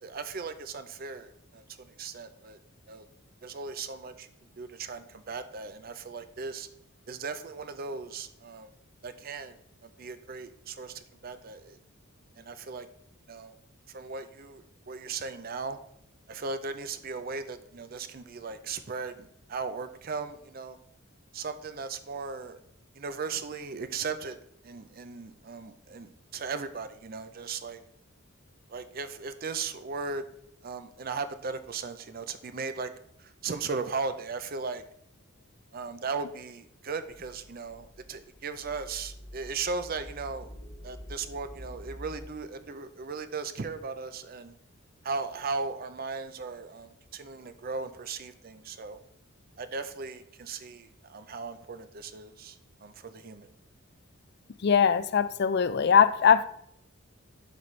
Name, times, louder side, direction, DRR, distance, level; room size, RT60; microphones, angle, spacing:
voice 1, 0.0-2.6 2.9-3.1 3.4-4.3 4.6-6.7 7.1-8.7 9.0-9.6 9.8-11.8 12.4-12.9 13.3-13.5 13.9-15.8 16.3-20.8 21.3-22.6 22.9-24.4 24.6-27.8 28.7-30.2 30.6-32.9 33.2-34.8 35.7-40.5 40.8-44.5 45.0-49.0 49.6-53.5, right 4 dB, 45° right, 0.5 m, -37 dB
sound 1, 37.1-42.2, equal, 80° left, 2.7 m, -47 dB
voice 2, 54.6-56.4, left 7 dB, 50° left, 0.4 m, -21 dB
11.5 x 4.1 x 3.2 m
head